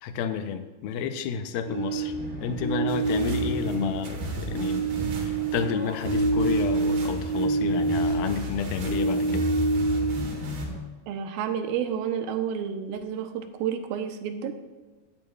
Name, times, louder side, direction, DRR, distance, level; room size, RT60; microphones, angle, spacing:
voice 1, 0.0-9.5, left 7 dB, 85° left, 8 dB, 2.5 m, -31 dB
sound 1, 1.7-4.2 4.5-8.4 8.7-10.4, right 3 dB, 45° right, 3.5 m, -27 dB
sound 2, 1.8-10.8, equal, 5° left, 2.6 m, -39 dB
sound 3, 2.9-10.7, equal, 70° right, 3.2 m, -35 dB
voice 2, 11.1-14.5, right 8 dB, 85° right, 7 dB, 2.6 m, -30 dB
16.5 x 8.9 x 2.3 m, 1.3 s
omnidirectional pair, 4.2 m